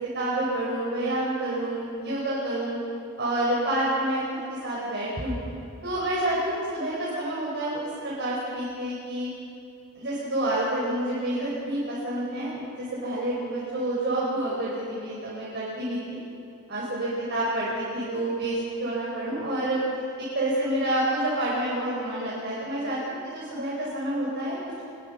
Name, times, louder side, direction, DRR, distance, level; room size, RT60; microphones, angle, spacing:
voice 1, 0.1-2.8 3.2-4.2 4.6-5.4 5.8-9.3 10.0-16.2 16.7-19.8 20.3-24.6, right 1 dB, 55° right, -7 dB, 5.6 m, -28 dB
25.0 x 21.0 x 5.8 m, 2.6 s
head